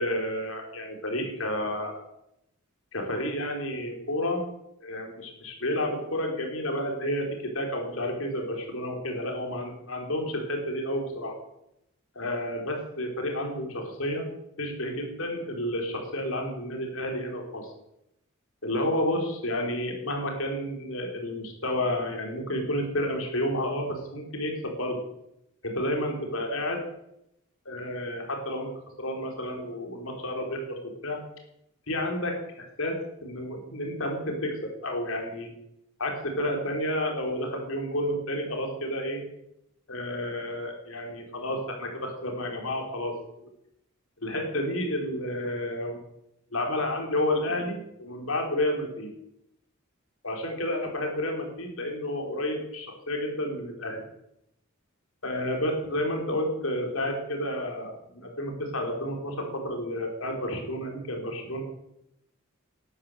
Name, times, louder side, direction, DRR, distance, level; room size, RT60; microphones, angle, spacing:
voice 1, 0.0-2.0 2.9-4.4 4.8-7.3 7.5-11.3 12.2-14.3 14.6-17.7 18.6-25.0 25.6-26.8 27.7-28.7 29.0-31.2 31.9-33.0 33.2-34.5 34.8-35.5 36.0-39.2 39.9-43.1 44.2-46.0 46.5-49.1 50.2-54.1 55.2-61.6, left 1 dB, 70° left, 2 dB, 3.7 m, -30 dB
13.0 x 10.0 x 6.8 m, 0.81 s
head